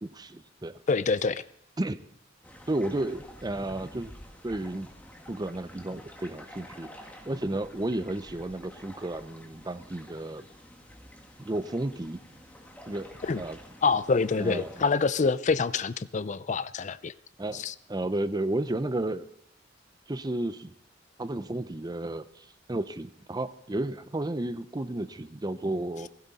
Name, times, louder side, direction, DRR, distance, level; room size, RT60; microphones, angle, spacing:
voice 1, 0.0-0.8 1.8-2.0 2.7-4.1 4.4-4.9 5.3-6.9 7.3-10.5 11.4-12.2 12.9-13.1 13.4-13.6 14.4-14.8 17.4-17.6 17.9-19.2 20.1-20.7 21.2-26.1, right 1 dB, 20° right, 0.6 m, -32 dB
voice 2, 0.9-1.4 13.2-13.4 13.8-17.1 17.5-17.7, left 4 dB, 40° left, 0.5 m, -26 dB
sound 1, 2.4-14.9, equal, 10° left, 1.8 m, -50 dB
16.0 x 15.5 x 4.1 m
head